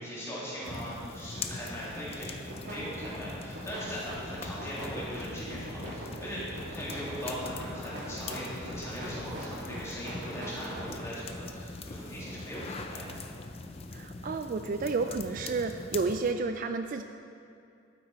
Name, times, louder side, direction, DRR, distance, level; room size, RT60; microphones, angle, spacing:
voice 1, 0.0-13.2, equal, 15° left, -8 dB, 2.9 m, -39 dB
sound 1, 0.6-16.3, left 3 dB, 30° left, 0.5 m, -43 dB
sound 2, 2.4-2.7 3.0-10.9, right 1 dB, 60° right, 3.1 m, -41 dB
sound 3, 3.8-13.2, right 1 dB, 20° right, 2.0 m, -55 dB
voice 2, 13.9-17.0, right 4 dB, 40° right, 7 dB, 0.3 m, -31 dB
12.5 x 8.9 x 4.3 m, 2.5 s
head